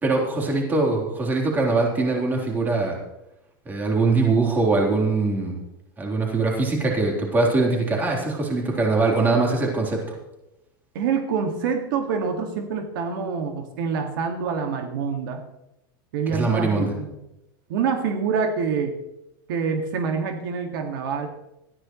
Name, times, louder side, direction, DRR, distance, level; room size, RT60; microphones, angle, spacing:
voice 1, 0.0-3.0 3.7-5.6 6.0-10.0 16.3-16.9, right 3 dB, 15° right, -1 dB, 3.7 m, -22 dB
voice 2, 10.9-15.4 16.1-17.2 17.7-19.0 19.5-21.3, right 5 dB, 70° right, 4 dB, 2.0 m, -26 dB
19.5 x 14.0 x 3.2 m, 0.89 s
supercardioid pair, 155°, 12 cm